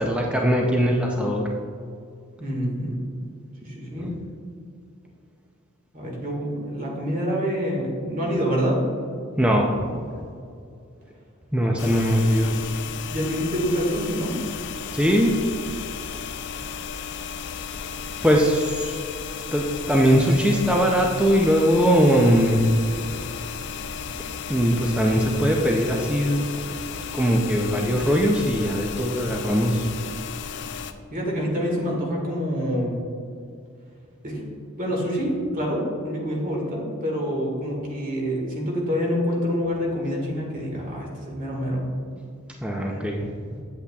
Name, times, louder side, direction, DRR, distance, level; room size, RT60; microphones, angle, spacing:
voice 1, 0.0-1.4 3.9-4.2 9.4-10.0 11.5-12.6 14.9-15.3 18.2-19.0 19.5-22.7 24.5-26.7 27.1-29.9 42.6-43.3, equal, 5° right, 0 dB, 0.4 m, -21 dB
voice 2, 2.4-3.0 3.6-4.1 5.9-8.8 13.1-14.3 24.1-24.2 31.1-33.0 34.2-34.4 34.8-41.9, equal, 40° right, -1 dB, 1.7 m, -26 dB
sound 1, 11.8-30.9, left 6 dB, 55° left, 0.4 m, -34 dB
8.2 x 8.2 x 2.3 m, 2.4 s
head